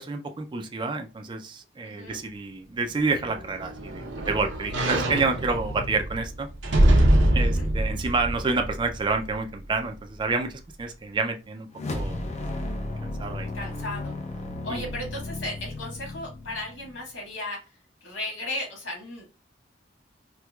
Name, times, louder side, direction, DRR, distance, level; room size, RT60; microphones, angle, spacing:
voice 1, 0.0-6.5 7.3-11.7 11.9-12.2 13.0-13.5 14.7-14.8, right 3 dB, 25° right, 5 dB, 0.4 m, -29 dB
voice 2, 1.8-2.2 7.4-7.7 13.5-14.1 14.6-17.6 18.0-19.3, left 1 dB, 85° left, -1 dB, 1.8 m, -35 dB
sound 1, 3.0-9.3 9.8-9.9, right 1 dB, 80° right, 0.7 m, -24 dB
sound 2, 11.7-17.1, left 2 dB, 40° left, 0.6 m, -34 dB
4.4 x 2.2 x 2.2 m, 0.30 s
head